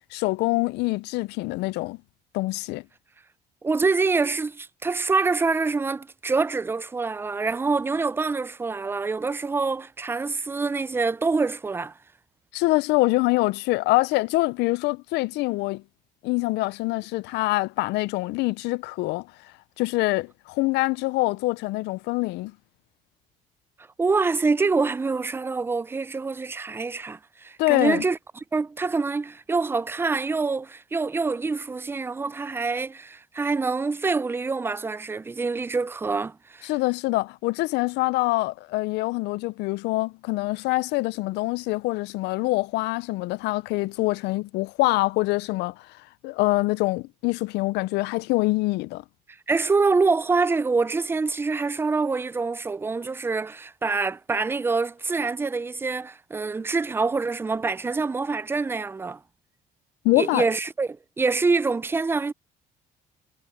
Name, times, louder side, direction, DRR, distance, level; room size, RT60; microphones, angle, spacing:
voice 1, 0.1-2.0 2.3-2.8 12.5-15.8 16.2-19.3 19.8-22.5 27.6-28.0 36.6-45.7 46.2-49.0 60.0-60.4, left 21 dB, 85° left, 0.4 m, -25 dB
voice 2, 3.6-11.9 24.0-28.2 28.5-36.7 49.5-59.2 60.2-62.3, right 4 dB, 15° right, 0.4 m, -25 dB
cardioid pair, 110°, 17 cm